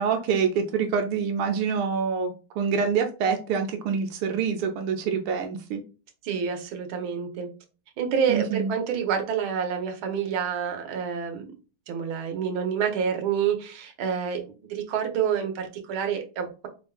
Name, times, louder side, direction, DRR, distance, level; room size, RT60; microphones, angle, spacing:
voice 1, 0.0-5.8 8.3-8.7, right 6 dB, 90° right, 4 dB, 1.6 m, -26 dB
voice 2, 6.2-7.5 8.0-11.5 11.9-14.4 14.7-16.7, right 7 dB, 70° right, 4 dB, 1.7 m, -28 dB
5.0 x 3.5 x 2.3 m, 0.34 s
omnidirectional pair, 2.4 m